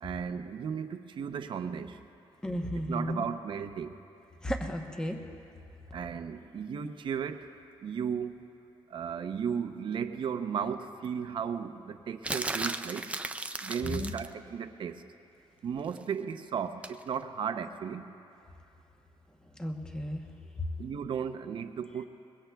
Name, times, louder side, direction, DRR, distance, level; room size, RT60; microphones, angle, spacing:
voice 1, 0.0-2.0 2.9-4.0 5.9-7.5 7.8-8.5 8.9-13.1 13.6-15.0 15.6-18.0 20.8-22.1, right 7 dB, 55° right, 8 dB, 0.7 m, -35 dB
voice 2, 2.4-3.2 4.4-5.2 13.8-14.1 19.6-20.2 20.6-20.7, equal, 10° left, 3 dB, 0.9 m, -33 dB
sound 1, 12.2-14.3 16.8-17.0, right 2 dB, 15° right, 0.4 m, -35 dB
23.0 x 22.0 x 2.3 m, 2.7 s
wide cardioid pair, 155°, 10 cm